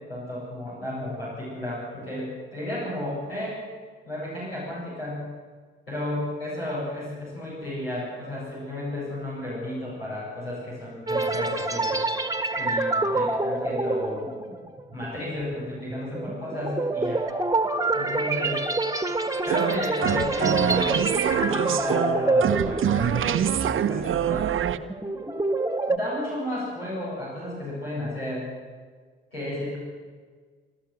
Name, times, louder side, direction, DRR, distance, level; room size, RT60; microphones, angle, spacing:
voice 1, 0.1-3.6 4.0-5.3 5.9-12.0 12.6-14.3 14.9-17.2 17.9-18.6 19.4-21.1 21.4-24.4 25.9-28.5 29.3-29.8, left 1 dB, 90° left, -9 dB, 7.9 m, -33 dB
sound 1, 11.1-23.6 23.9-24.2 24.6-26.0, right 2 dB, 10° right, 1.5 m, -27 dB
sound 2, 19.5-24.8, right 9 dB, 45° right, 1.0 m, -25 dB
26.0 x 13.5 x 8.0 m, 1.5 s
figure-of-eight pair, 45°, 29 cm